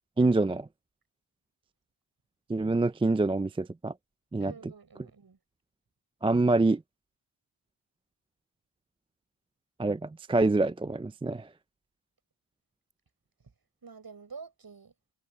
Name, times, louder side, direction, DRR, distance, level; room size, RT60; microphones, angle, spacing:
voice 1, 0.2-0.7 2.5-3.9 4.3-4.5 6.2-6.8 9.8-11.5, right 2 dB, 10° right, 0.4 m, -26 dB
voice 2, 4.4-5.4 13.8-14.9, right 5 dB, 50° right, 6.7 m, -47 dB
cardioid pair, 60°, 48 cm